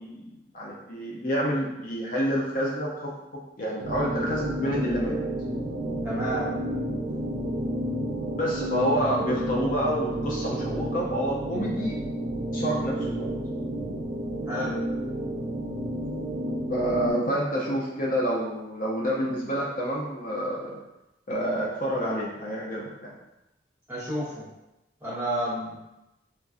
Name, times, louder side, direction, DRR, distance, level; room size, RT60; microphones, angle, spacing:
voice 1, 0.0-3.1 3.6-5.2 8.3-12.0 12.5-13.3 16.7-20.8 21.3-23.2, equal, 45° left, -4 dB, 0.4 m, -28 dB
sound 1, 3.8-17.1, right 1 dB, 65° right, 0.4 m, -31 dB
voice 2, 6.0-6.5 14.5-14.8 23.9-24.5 25.0-25.8, equal, 10° right, -9 dB, 0.9 m, -30 dB
3.1 x 2.4 x 2.4 m, 0.95 s
head